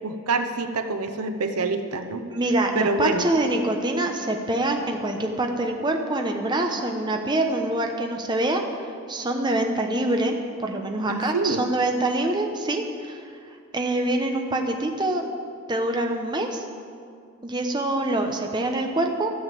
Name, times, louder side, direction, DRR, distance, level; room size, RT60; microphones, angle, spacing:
voice 1, 0.0-2.2 2.7-3.3 11.1-11.6, right 3 dB, 90° right, 8 dB, 0.8 m, -26 dB
voice 2, 2.3-8.6 9.1-13.2 13.7-15.2 15.7-16.6 17.4-19.3, right 1 dB, 20° right, 3 dB, 0.9 m, -25 dB
13.0 x 7.1 x 7.7 m, 2.3 s
head